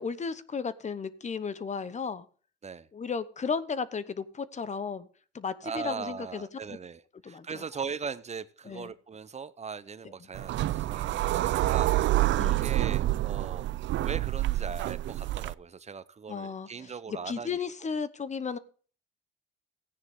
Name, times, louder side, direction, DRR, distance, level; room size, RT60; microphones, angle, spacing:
voice 1, 0.0-2.2 2.9-5.1 5.3-6.5 7.2-7.6 8.6-8.9 12.4-12.6 16.3-18.6, left 5 dB, 35° left, 15 dB, 0.9 m, -34 dB
voice 2, 5.6-13.7 14.0-17.7, right 6 dB, 35° right, 15 dB, 0.7 m, -40 dB
sound 1, 10.3-15.5, right 15 dB, 70° right, 0.4 m, -27 dB
15.0 x 9.6 x 3.6 m, 0.40 s
cardioid pair, 90°, 20 cm